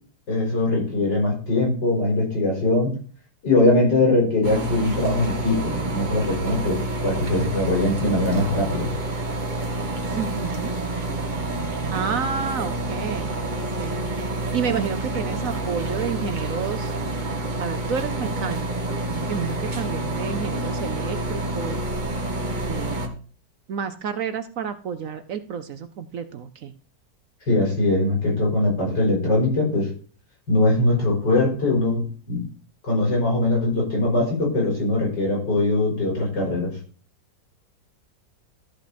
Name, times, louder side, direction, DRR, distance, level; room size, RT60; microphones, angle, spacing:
voice 1, 0.3-2.9 3.4-8.9 27.5-29.9 30.5-32.4 32.8-36.7, left 2 dB, 85° left, -2 dB, 5.7 m, -21 dB
sound 1, 4.4-23.1, right 1 dB, 30° right, 1.2 m, -28 dB
voice 2, 10.1-10.8 11.9-13.4 13.8-14.0 14.5-16.9 17.6-18.6 19.3-21.8 22.6-23.0 23.7-26.7, right 7 dB, 60° right, 10 dB, 1.0 m, -30 dB
13.0 x 5.9 x 4.2 m, 0.41 s
omnidirectional pair, 1.8 m